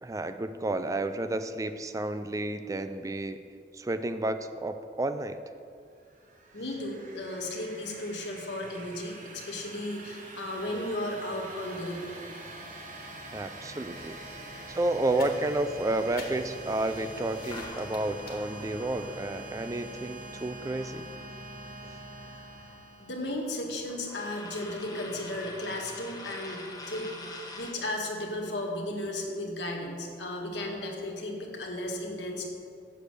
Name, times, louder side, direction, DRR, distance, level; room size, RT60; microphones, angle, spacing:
voice 1, 0.0-3.4 3.7-5.4 13.3-14.2 14.7-21.1, right 2 dB, 20° right, 10 dB, 0.4 m, -31 dB
sound 1, 6.1-23.7, right 2 dB, 45° right, 1.0 m, -45 dB
voice 2, 6.5-12.1 22.2-27.2 27.5-32.4, left 1 dB, 85° left, 0 dB, 1.5 m, -35 dB
sound 2, 13.9-19.1, left 3 dB, 55° left, 1.5 m, -48 dB
sound 3, 17.5-21.6 21.9-27.8, left 2 dB, 25° left, 1.1 m, -46 dB
7.4 x 6.6 x 6.5 m, 2.4 s
head